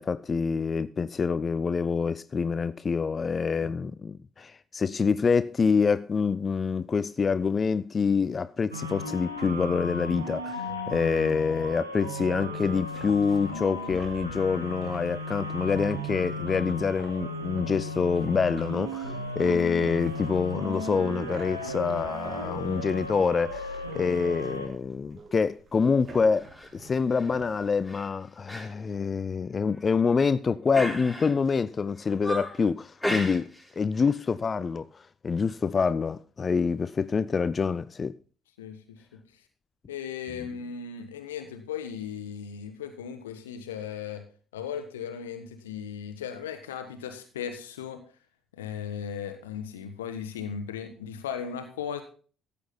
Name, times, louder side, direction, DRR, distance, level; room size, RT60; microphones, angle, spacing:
voice 1, 0.0-33.5 33.8-34.9 35.2-38.2, left 5 dB, 35° left, 0.4 m, -26 dB
sound 1, 8.7-24.7, left 1 dB, 90° right, 1.4 m, -35 dB
sound 2, 12.5-27.9, right 4 dB, 40° right, 1.9 m, -51 dB
sound 3, 26.3-26.7 27.1-27.4 27.8-28.1 28.5-28.7 29.0-29.1 29.7-30.2 30.7-31.5 31.9-32.6 33.0-33.7 34.0-34.2, equal, ahead, 4.0 m, -35 dB
voice 2, 38.6-39.2 39.9-44.2 44.5-48.0 48.6-52.0, left 7 dB, 75° left, 1.1 m, -37 dB
14.0 x 8.3 x 4.1 m
figure-of-eight pair, 45°, 0 cm